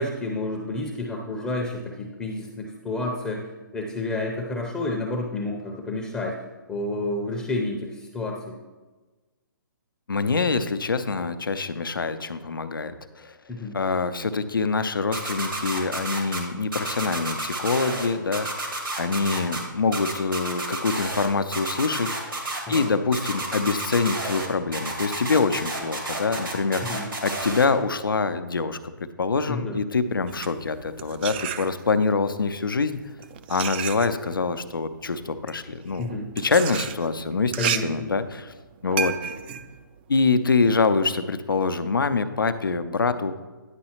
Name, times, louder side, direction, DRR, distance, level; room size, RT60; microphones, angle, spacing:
voice 1, 0.0-6.4 6.7-8.6 13.5-13.8 22.7-22.9 26.8-27.1 29.5-29.8 36.0-36.3 37.6-38.1, left 2 dB, 10° left, 0 dB, 0.6 m, -30 dB
voice 2, 10.1-13.4 13.7-22.3 22.7-33.0 33.5-36.1 36.4-38.5 38.8-39.3 40.1-43.3, left 4 dB, 80° left, 10 dB, 0.6 m, -25 dB
sound 1, 15.1-16.4 16.7-18.1 18.3-19.6 19.9-21.3 21.5-22.8 23.1-24.5 24.7-27.7, right 2 dB, 80° right, 1.9 m, -30 dB
sound 2, 30.2-32.1 32.9-40.8, right 9 dB, 30° right, 0.3 m, -33 dB
9.7 x 5.4 x 2.9 m, 1.2 s
figure-of-eight pair, 130°, 11 cm